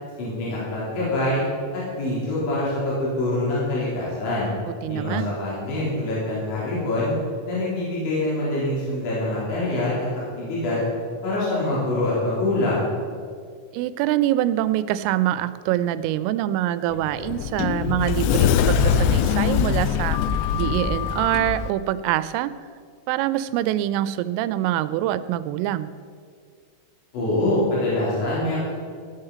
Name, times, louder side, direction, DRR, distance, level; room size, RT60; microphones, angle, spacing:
voice 1, 0.2-1.4 1.7-4.5 4.9-7.1 7.5-10.1 10.4-10.8 11.2-12.9 27.1-28.7, left 1 dB, 65° left, -8 dB, 6.2 m, -25 dB
voice 2, 4.8-5.3 13.7-20.2 20.5-22.5 23.1-25.9, right 13 dB, 90° right, 14 dB, 3.2 m, -24 dB
Sliding door, 16.9-21.7, left 8 dB, 90° left, 3.3 m, -22 dB
16.5 x 9.9 x 5.7 m, 2.1 s
omnidirectional pair, 5.7 m